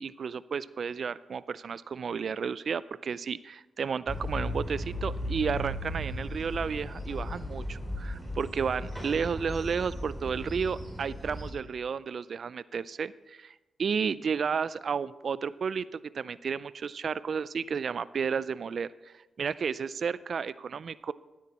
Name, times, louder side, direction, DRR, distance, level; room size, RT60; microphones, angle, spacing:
voice 1, 0.0-21.1, right 6 dB, 65° right, 18 dB, 0.3 m, -32 dB
sound 1, 4.1-11.5, left 1 dB, 10° right, 3.2 m, -36 dB
14.5 x 8.3 x 4.2 m, 1.1 s
cardioid pair, 60°, 0 cm